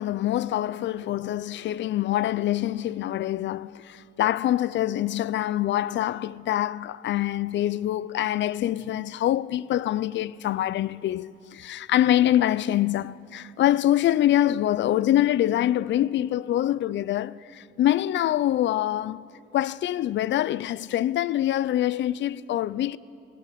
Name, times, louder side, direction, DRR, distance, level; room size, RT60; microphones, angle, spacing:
voice 1, 0.0-19.2 19.5-23.0, left 13 dB, 65° left, 0.5 m, -25 dB
20.5 x 17.0 x 8.5 m
cardioid pair, 90°, 20 cm